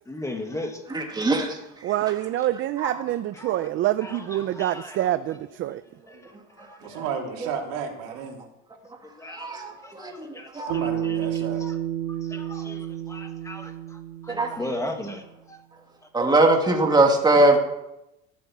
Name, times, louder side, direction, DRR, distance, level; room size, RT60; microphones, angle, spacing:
voice 1, 0.1-0.8 3.3-3.7 4.0-5.1 6.1-6.3 6.6-7.0 9.0-9.6 9.8-11.8 12.2-15.6 16.2-16.3 16.6-17.0, left 1 dB, 10° left, 5 dB, 1.6 m, -38 dB
voice 2, 0.9-1.6 2.8-3.0 9.3-10.3 10.5-10.8 14.3-14.5 16.1-17.6, right 2 dB, 15° right, 2 dB, 2.3 m, -21 dB
voice 3, 1.8-5.8, right 13 dB, 40° right, 13 dB, 0.5 m, -26 dB
voice 4, 6.8-8.4 9.5-9.7 10.3-11.6, right 7 dB, 85° right, 2 dB, 3.1 m, -34 dB
Bass guitar, 10.7-15.1, right 10 dB, 70° right, 1.9 m, -31 dB
15.0 x 8.6 x 7.3 m, 0.89 s
cardioid pair, 150°, 30 cm